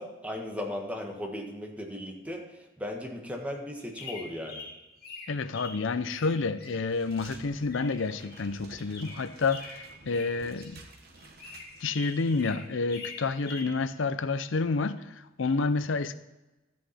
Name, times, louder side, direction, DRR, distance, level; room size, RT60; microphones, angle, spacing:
voice 1, 0.0-4.7, left 1 dB, 5° right, 1.6 m, -37 dB
sound 1, 3.8-7.2 7.6-8.6 8.8-10.8 11.1-13.7, left 3 dB, 55° left, 2.8 m, -45 dB
voice 2, 5.3-10.9 11.8-16.1, left 4 dB, 70° left, 0.6 m, -29 dB
sound 2, 6.9-12.5 12.7-13.0, right 3 dB, 55° right, 1.3 m, -52 dB
13.0 x 8.4 x 4.2 m
head